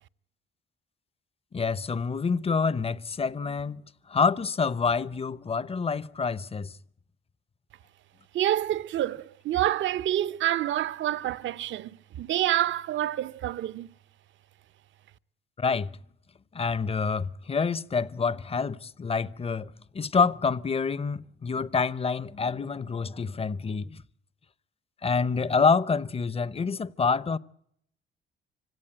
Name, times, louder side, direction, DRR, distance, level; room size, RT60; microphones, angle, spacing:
voice 1, 1.5-3.8 4.1-6.7 15.6-15.9 16.5-24.0 25.0-27.4, left 5 dB, 30° left, 0.8 m, -27 dB
voice 2, 8.3-13.9, right 13 dB, 70° right, 0.8 m, -27 dB
25.5 x 17.0 x 8.9 m
cardioid pair, 90°, 20 cm